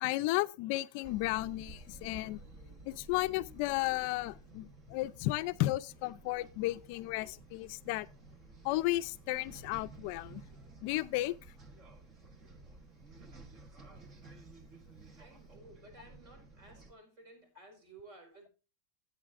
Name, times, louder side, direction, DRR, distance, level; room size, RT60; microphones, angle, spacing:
voice 1, 0.0-2.4 2.9-8.1 8.6-10.4 10.8-11.3, left 18 dB, 50° left, 0.5 m, -33 dB
sound 1, 1.0-16.9, right 2 dB, 30° right, 1.1 m, -53 dB
voice 2, 15.2-18.5, right 2 dB, 45° right, 4.8 m, -56 dB
13.5 x 8.9 x 2.5 m
supercardioid pair, 155°, 0 cm